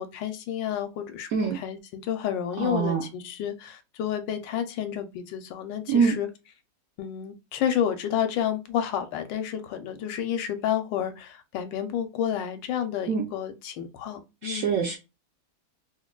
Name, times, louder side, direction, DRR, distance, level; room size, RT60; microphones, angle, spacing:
voice 1, 0.0-6.3 7.0-14.7, left 9 dB, 75° left, 1.2 m, -30 dB
voice 2, 2.6-3.0 5.9-6.1 13.1-13.3 14.4-15.0, right 6 dB, 75° right, 0.8 m, -24 dB
3.7 x 2.1 x 2.2 m
omnidirectional pair, 2.0 m